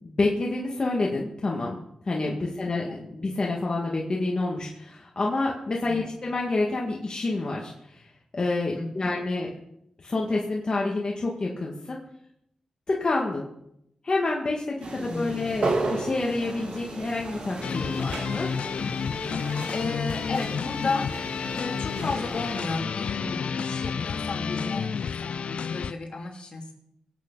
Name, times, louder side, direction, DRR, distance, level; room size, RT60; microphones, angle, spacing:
voice 1, 0.0-1.8 2.0-9.5 10.0-12.0 12.9-13.4 14.0-18.5, left 2 dB, 40° left, -2 dB, 2.1 m, -28 dB
voice 2, 5.8-6.1 8.7-9.1 14.9-15.6 19.7-21.3 21.5-26.7, left 3 dB, 60° left, 0 dB, 3.0 m, -33 dB
sound 1, 14.8-22.8, right 2 dB, 75° right, 3.6 m, -34 dB
sound 2, 17.6-25.9, left 6 dB, 75° left, 0.4 m, -30 dB
24.0 x 8.7 x 4.1 m, 0.77 s
wide cardioid pair, 85°, 2 cm